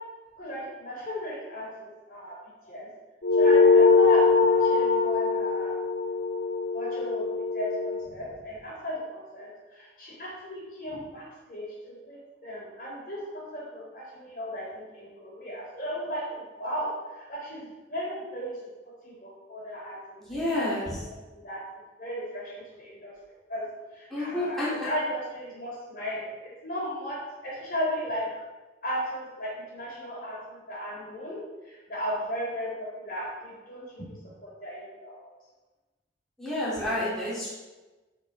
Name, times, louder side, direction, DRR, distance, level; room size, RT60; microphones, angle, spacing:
voice 1, 0.4-2.4 2.6-2.9 3.3-5.8 6.7-7.2 7.5-18.5 19.0-20.7 21.0-21.6 22.0-23.1 23.5-23.7 23.9-28.3 28.8-31.4 31.6-34.1 34.4-35.3, equal, 50° left, -4 dB, 3.4 m, -36 dB
sound 1, 3.2-8.0, left 4 dB, 65° left, 1.5 m, -22 dB
voice 2, 20.2-21.0 24.1-24.9 36.4-37.5, left 1 dB, ahead, -9 dB, 2.6 m, -29 dB
12.5 x 4.9 x 4.7 m, 1.2 s
head